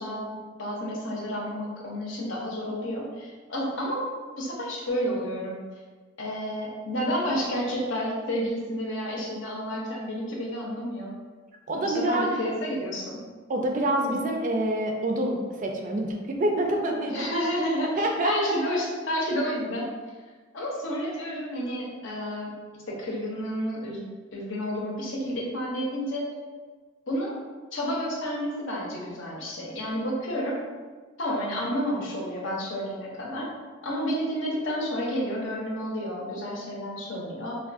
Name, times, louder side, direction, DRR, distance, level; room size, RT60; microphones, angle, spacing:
voice 1, 0.0-4.1 4.4-5.6 6.2-11.1 11.7-13.2 14.0-14.2 17.1-19.9 20.5-22.5 22.9-24.1 24.3-26.3 27.1-27.3 27.7-30.6 31.2-33.5 33.8-37.6, equal, 70° left, -3 dB, 0.7 m, -30 dB
voice 2, 11.7-12.4 13.5-17.3 18.0-18.5, right 1 dB, 40° right, 2 dB, 0.3 m, -26 dB
3.5 x 2.3 x 2.5 m, 1.4 s
head